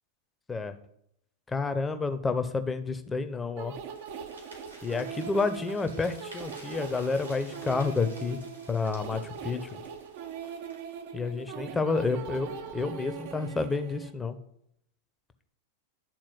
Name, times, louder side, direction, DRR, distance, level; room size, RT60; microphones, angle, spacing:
voice 1, 1.5-3.8 4.8-8.4 8.7-9.8 11.1-14.4, left 4 dB, 15° left, 9 dB, 0.8 m, -30 dB
sound 1, 3.6-14.1, right 7 dB, 50° right, 0.9 m, -41 dB
sound 2, 3.9-11.1, right 1 dB, 85° right, 3.2 m, -51 dB
11.0 x 4.4 x 6.2 m, 0.74 s
figure-of-eight pair, 90°, 0 cm